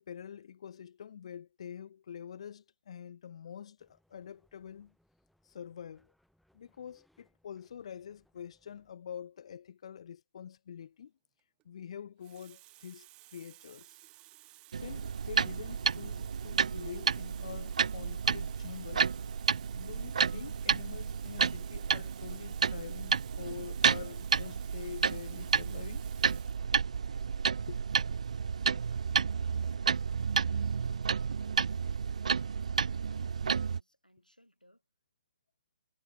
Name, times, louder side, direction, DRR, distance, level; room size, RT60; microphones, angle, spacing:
voice 1, 0.0-4.9 5.4-6.1 6.5-11.1 11.6-14.0 14.8-19.1 19.7-26.0 26.3-26.4 27.7-27.8, left 8 dB, 45° left, 1.0 m, -46 dB
sound 1, 3.8-8.9, equal, ahead, 5.5 m, -73 dB
Water tap faucet, 11.4-11.6 12.2-26.7 27.6-27.8, right 19 dB, 20° right, 3.8 m, -56 dB
sound 2, 14.7-33.8, right 6 dB, 55° right, 0.4 m, -31 dB
voice 2, 27.1-28.1 28.5-32.1 32.5-34.8, equal, 90° left, 4.6 m, -65 dB
figure-of-eight pair, 130°, 4 cm